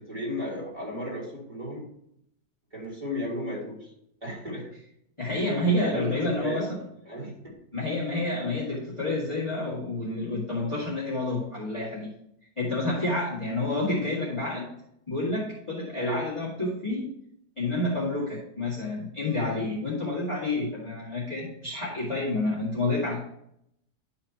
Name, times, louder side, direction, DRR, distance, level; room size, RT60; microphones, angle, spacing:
voice 1, 0.0-1.9 2.7-3.9 4.2-4.7 5.2-6.8 7.0-7.6 15.9-16.3, left 1 dB, 20° right, -5 dB, 3.4 m, -35 dB
voice 2, 5.2-6.8 7.7-12.1 12.6-14.7 15.1-17.1 17.6-23.2, left 2 dB, 20° left, -7 dB, 2.0 m, -29 dB
11.0 x 5.7 x 2.9 m, 0.74 s
omnidirectional pair, 1.7 m